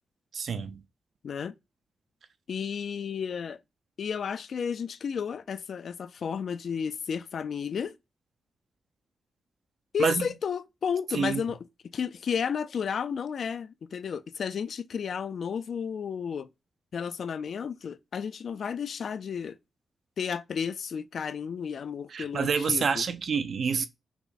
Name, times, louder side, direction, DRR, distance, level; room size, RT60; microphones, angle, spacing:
voice 1, 0.3-0.8 10.0-10.3 11.1-11.4 22.1-23.9, right 6 dB, 50° right, 0.5 m, -27 dB
voice 2, 2.5-3.6 4.0-7.9 9.9-11.6 11.9-16.5 16.9-19.6 20.2-23.1, left 7 dB, 55° left, 0.3 m, -32 dB
5.8 x 2.1 x 4.0 m
wide cardioid pair, 175°, 0 cm